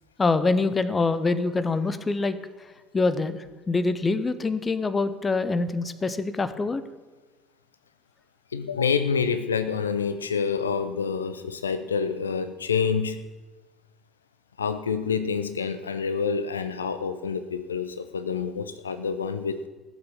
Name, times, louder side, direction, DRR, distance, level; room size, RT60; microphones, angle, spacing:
voice 1, 0.2-2.4 2.9-6.8, left 3 dB, 25° left, 13 dB, 0.9 m, -25 dB
voice 2, 8.5-13.2 14.6-19.7, left 6 dB, 80° left, 11 dB, 0.5 m, -27 dB
16.0 x 6.9 x 7.2 m, 1.2 s
figure-of-eight pair, 60°, 0 cm